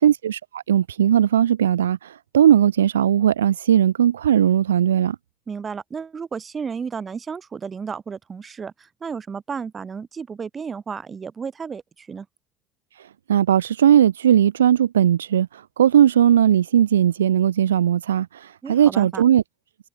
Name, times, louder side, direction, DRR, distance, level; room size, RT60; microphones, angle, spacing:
voice 1, 0.0-5.2 13.0-19.4, right 10 dB, 80° right, 0.4 m, -18 dB
voice 2, 5.5-12.3 18.6-19.2, right 6 dB, 35° right, 2.9 m, -33 dB
figure-of-eight pair, 50°, 0 cm